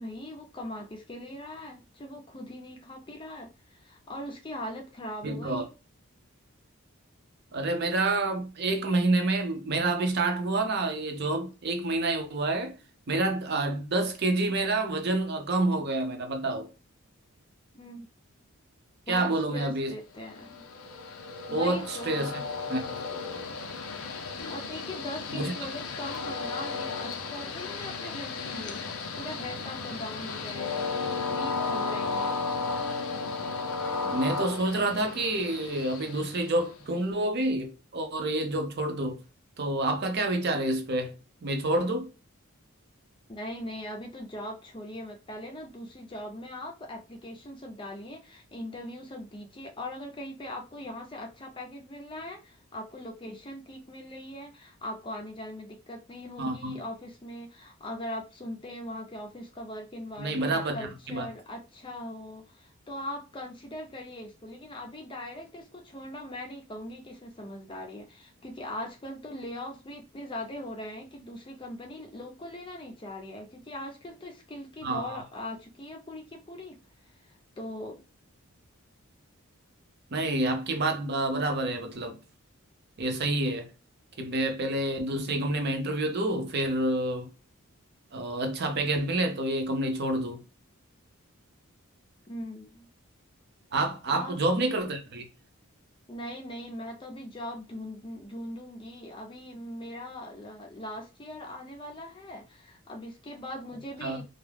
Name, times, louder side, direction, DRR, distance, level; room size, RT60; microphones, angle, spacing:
voice 1, 0.0-5.7 17.7-18.1 19.1-20.6 21.5-22.4 24.5-28.8 29.2-31.0 31.3-32.5 43.3-76.8 77.0-78.0 92.3-92.9 94.1-94.4 96.1-104.2, left 1 dB, 25° left, 0.5 m, -40 dB
voice 2, 5.2-5.6 7.5-12.7 13.1-16.7 19.1-19.9 21.5-22.4 22.7-23.0 25.3-25.5 34.0-39.2 39.6-41.1 41.4-42.1 56.4-56.8 60.2-61.3 74.8-75.2 80.1-82.2 83.0-83.7 84.2-87.3 88.1-90.4 93.7-95.3 104.0-104.2, right 2 dB, 50° right, 0.6 m, -28 dB
Train, 20.2-37.0, left 4 dB, 80° left, 0.5 m, -34 dB
2.3 x 2.1 x 3.3 m
head